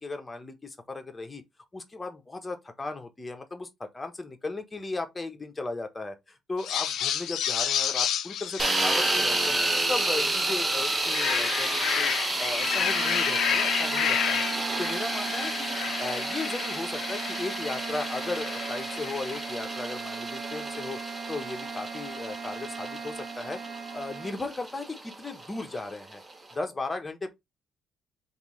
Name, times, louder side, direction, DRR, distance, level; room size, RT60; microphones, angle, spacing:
voice 1, 0.0-1.4 1.7-9.6 9.9-12.1 12.4-14.5 14.8-21.0 21.3-23.6 23.9-26.2 26.5-27.3, left 3 dB, 20° left, 0.9 m, -36 dB
sound 1, 6.6-10.5 10.9-19.6, left 9 dB, 80° left, 0.4 m, -31 dB
sound 2, 8.6-26.5, right 2 dB, 25° right, 0.8 m, -31 dB
sound 3, 12.5-24.4, right 6 dB, 75° right, 0.8 m, -39 dB
3.6 x 2.6 x 3.0 m
cardioid pair, 90°, 0 cm